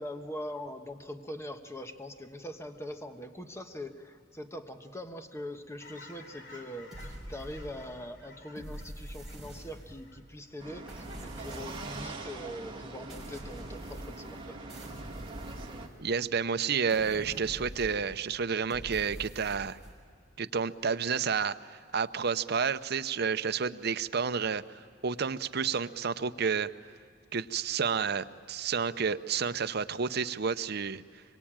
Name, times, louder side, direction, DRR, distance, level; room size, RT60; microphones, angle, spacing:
voice 1, 0.0-14.6, left 1 dB, 15° left, 6 dB, 1.2 m, -42 dB
Fowl / Chirp tweet, 5.8-11.6 12.0-12.3, left 2 dB, 70° left, 3.2 m, -54 dB
sound 1, 6.9-8.0 8.5-10.2 10.9-12.2 13.1-14.4 14.7-16.3 16.9-18.3 18.7-20.0, right 1 dB, ahead, 6.1 m, -45 dB
sound 2, 10.6-15.9, right 2 dB, 30° right, 2.1 m, -43 dB
voice 2, 16.0-19.8 20.4-26.7 27.3-31.0, right 6 dB, 60° right, 11 dB, 0.7 m, -30 dB
25.5 x 23.5 x 8.9 m, 2.2 s
head